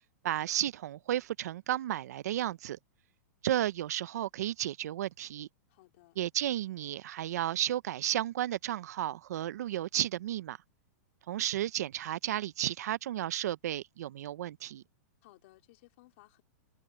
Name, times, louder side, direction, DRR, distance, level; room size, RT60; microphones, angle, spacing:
voice 1, 0.2-2.8 3.4-5.5 6.2-10.6 11.3-14.8, right 12 dB, 65° right, 0.5 m, -33 dB
voice 2, 5.7-6.2 15.2-16.4, left 19 dB, 45° left, 3.5 m, -60 dB
supercardioid pair, 165°, 9 cm